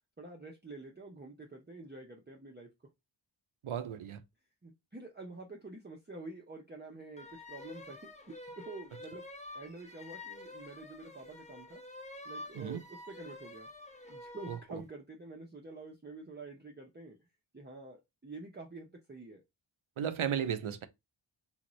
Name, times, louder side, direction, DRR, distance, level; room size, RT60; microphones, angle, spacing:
voice 1, 0.2-2.7 4.6-9.2 9.5-11.8 12.2-13.7 14.1-17.2 17.5-19.4, right 3 dB, 20° right, 0.7 m, -48 dB
voice 2, 3.6-4.2 12.6-12.8 14.5-14.8 20.0-20.9, right 8 dB, 80° right, 0.6 m, -35 dB
sound 1, 7.2-14.7, left 2 dB, 15° left, 0.6 m, -48 dB
3.5 x 2.6 x 3.0 m
wide cardioid pair, 65°, 48 cm